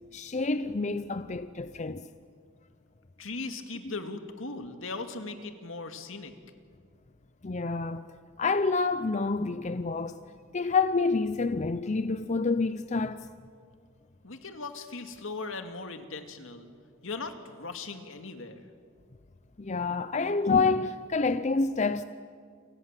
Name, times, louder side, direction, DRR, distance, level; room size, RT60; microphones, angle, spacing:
voice 1, 0.1-2.1 7.4-8.1 8.4-10.2 10.5-13.3 19.6-22.0, left 4 dB, 35° left, 0.6 m, -28 dB
voice 2, 3.2-6.3 14.2-16.7 17.0-18.6, left 3 dB, 75° left, 2.3 m, -38 dB
29.5 x 24.5 x 7.5 m
head